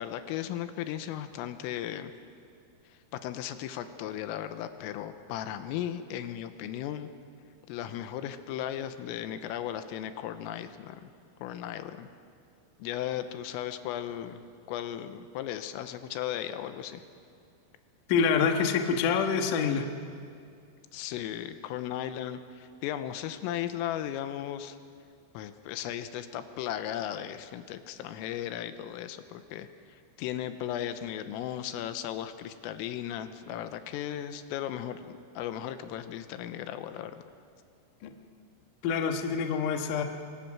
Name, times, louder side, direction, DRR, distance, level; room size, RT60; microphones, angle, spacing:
voice 1, 0.0-2.1 3.1-7.1 7.7-11.1 11.4-12.1 12.8-14.4 14.7-17.0 20.9-24.8 25.3-37.2, left 11 dB, 90° left, 10 dB, 3.5 m, -36 dB
voice 2, 18.1-19.9 38.0-38.1 38.8-40.0, left 6 dB, 70° left, 4 dB, 2.0 m, -26 dB
27.0 x 23.0 x 6.1 m, 2.3 s
omnidirectional pair, 5.9 m